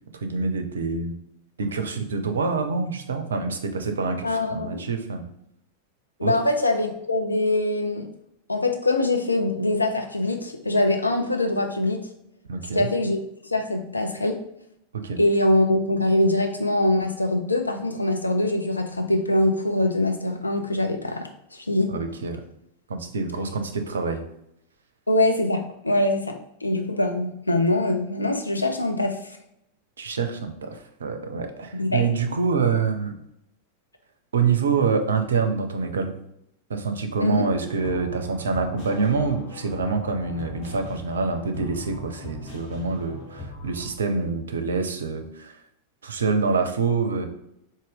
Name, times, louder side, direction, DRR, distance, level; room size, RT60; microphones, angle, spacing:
voice 1, 0.2-1.1 1.6-5.3 6.2-6.3 12.5-12.9 14.9-15.2 21.9-22.4 22.9-24.2 30.0-33.1 34.3-36.1 36.7-45.6 46.0-47.3, right 4 dB, 70° right, 6 dB, 0.4 m, -26 dB
voice 2, 4.2-4.9 6.2-8.1 8.5-12.0 12.7-13.2 13.5-14.4 15.2-21.9 25.1-26.4 26.6-29.2 31.7-32.1 37.2-37.5, left 1 dB, 80° left, 4 dB, 0.4 m, -23 dB
sound 1, 37.5-43.9, left 2 dB, 40° left, 1.3 m, -39 dB
3.8 x 2.1 x 3.5 m, 0.78 s
figure-of-eight pair, 90°, 0 cm